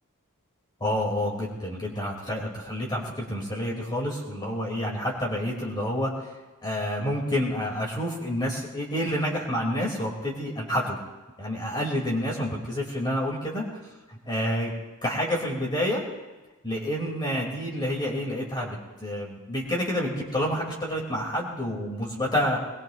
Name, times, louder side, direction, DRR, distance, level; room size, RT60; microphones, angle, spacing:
voice 1, 0.8-6.3 6.6-11.0 11.4-13.8 14.1-14.7 15.0-16.0 16.6-22.6, equal, 20° left, -3 dB, 2.9 m, -28 dB
22.0 x 21.0 x 2.6 m, 1.2 s
head